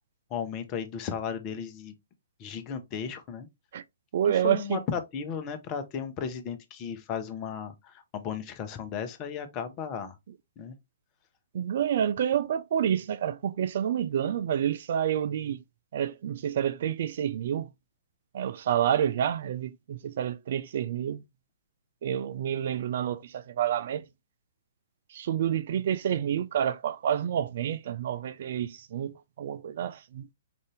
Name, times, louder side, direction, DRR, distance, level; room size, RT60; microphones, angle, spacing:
voice 1, 0.3-2.0 2.4-3.5 4.2-10.2 10.6-10.8, left 7 dB, 30° left, 0.9 m, -35 dB
voice 2, 4.1-4.8 11.5-15.6 15.9-17.7 18.3-21.2 22.0-24.0 25.1-29.1 29.4-30.3, right 9 dB, 55° right, 0.3 m, -28 dB
5.1 x 2.6 x 3.2 m
figure-of-eight pair, 120°, 0 cm